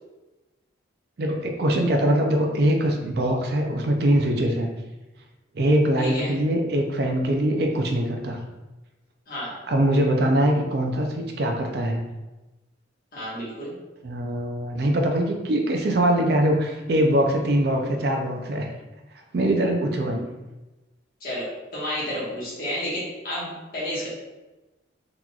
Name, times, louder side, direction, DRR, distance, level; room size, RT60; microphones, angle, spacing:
voice 1, 1.2-4.7 5.5-8.4 9.7-12.0 14.0-18.7 19.3-20.3, right 1 dB, 55° right, 2 dB, 0.4 m, -22 dB
voice 2, 6.0-6.3 9.3-9.6 13.1-13.7 21.2-24.1, equal, 50° left, -7 dB, 1.3 m, -31 dB
3.8 x 3.0 x 2.3 m, 1.1 s
head